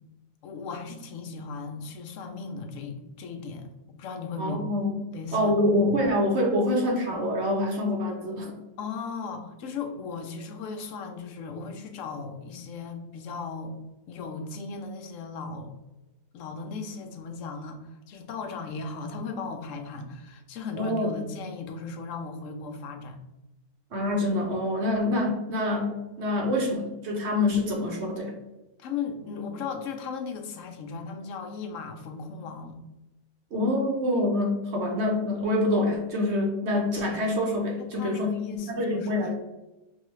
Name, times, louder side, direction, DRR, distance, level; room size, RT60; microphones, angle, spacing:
voice 1, 0.4-4.7 5.1-5.5 8.8-13.7 14.1-15.7 16.3-23.2 25.2-25.3 28.8-32.8 37.9-39.3, left 4 dB, 65° left, 5 dB, 0.9 m, -37 dB
voice 2, 4.4-5.0 5.3-8.6 20.8-21.1 23.9-28.3 33.5-39.3, left 1 dB, 55° right, 1 dB, 0.8 m, -26 dB
5.5 x 2.3 x 3.1 m, 1.0 s
omnidirectional pair, 1.7 m